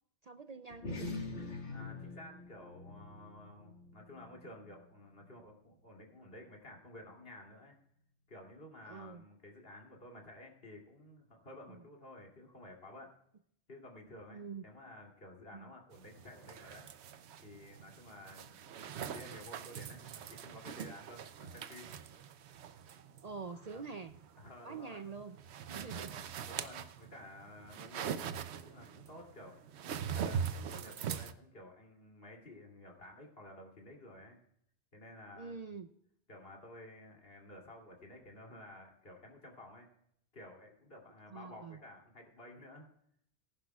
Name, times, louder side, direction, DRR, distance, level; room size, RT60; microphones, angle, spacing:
voice 1, 0.2-1.2 8.9-9.2 11.7-11.8 14.3-14.6 15.5-15.7 23.2-24.1 24.6-25.4 25.7-26.1 27.8-27.9 35.4-35.9 41.3-41.8, right 5 dB, 50° right, 9 dB, 0.5 m, -45 dB
sound 1, 0.7-5.5, left 3 dB, 75° left, 2.3 m, -45 dB
voice 2, 1.7-7.8 8.3-13.1 13.7-16.9 17.4-22.0 23.7-23.8 24.4-25.0 25.7-29.6 30.1-34.4 34.9-35.6 36.3-39.9 40.3-42.9, left 1 dB, 55° left, 0 dB, 2.9 m, -53 dB
sound 2, 15.9-31.3, right 7 dB, 75° right, 0.9 m, -43 dB
19.0 x 11.0 x 2.3 m, 0.70 s
omnidirectional pair, 1.2 m